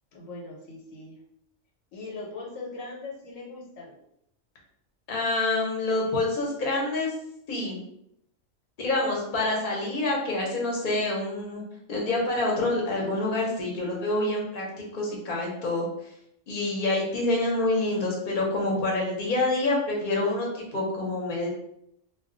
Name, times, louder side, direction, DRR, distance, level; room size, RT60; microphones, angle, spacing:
voice 1, 0.1-1.2 1.9-4.0 16.9-17.1, left 3 dB, 85° left, -1 dB, 1.2 m, -40 dB
voice 2, 5.1-7.1 7.5-7.8 8.8-11.6 11.9-14.6 14.9-15.9 16.5-21.5, left 2 dB, 45° left, -2 dB, 0.9 m, -27 dB
2.4 x 2.2 x 3.7 m, 0.75 s
omnidirectional pair, 1.3 m